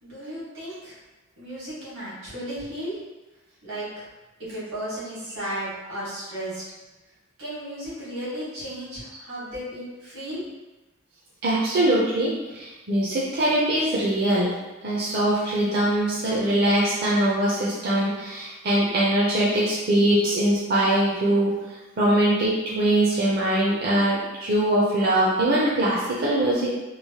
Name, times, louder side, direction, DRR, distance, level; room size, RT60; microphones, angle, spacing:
voice 1, 0.0-0.9 1.4-3.0 3.6-4.0 4.4-6.6 7.4-10.4, right 1 dB, 85° right, -8 dB, 1.4 m, -34 dB
voice 2, 11.4-14.5 14.8-21.5 22.0-26.8, right 1 dB, 50° right, -7 dB, 0.5 m, -22 dB
3.1 x 2.1 x 2.7 m, 1.1 s
head